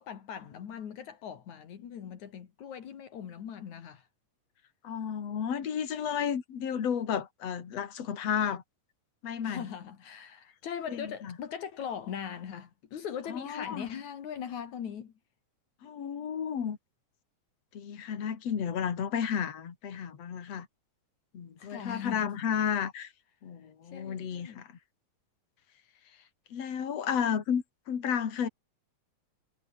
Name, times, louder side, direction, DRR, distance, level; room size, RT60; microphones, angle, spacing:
voice 1, 0.0-4.1 9.4-15.1 21.6-22.4 23.8-24.7, left 8 dB, 75° left, 3.5 m, -40 dB
voice 2, 4.8-8.6 9.2-9.6 11.0-11.1 13.3-13.9 15.8-16.8 17.7-20.7 21.3-23.1 23.4-24.7 26.5-28.5, left 8 dB, 60° left, 3.6 m, -32 dB
omnidirectional pair, 3.3 m